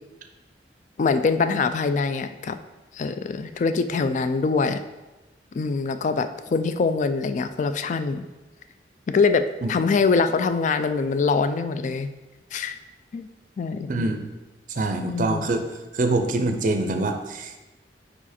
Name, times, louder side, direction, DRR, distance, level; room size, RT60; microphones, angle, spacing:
voice 1, 1.0-2.6 2.9-4.8 5.5-8.2 9.1-12.1 12.5-12.7 13.1-13.3 13.6-13.9 15.0-15.5, left 4 dB, 45° left, 11 dB, 0.3 m, -23 dB
voice 2, 13.9-14.3 14.7-15.6 15.9-17.6, right 2 dB, 45° right, 5 dB, 0.5 m, -25 dB
5.0 x 4.8 x 4.2 m, 1.1 s
head